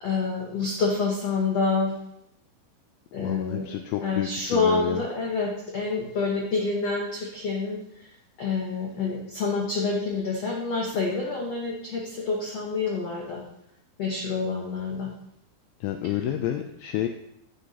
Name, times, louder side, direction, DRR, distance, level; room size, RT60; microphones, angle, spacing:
voice 1, 0.0-1.9 3.1-3.7 4.0-8.1 8.4-13.4 14.0-15.1, left 4 dB, 70° left, -2 dB, 1.5 m, -27 dB
voice 2, 3.2-5.0 15.8-17.1, left 11 dB, 85° left, 5 dB, 2.0 m, -30 dB
11.5 x 8.3 x 2.8 m, 0.77 s
omnidirectional pair, 4.7 m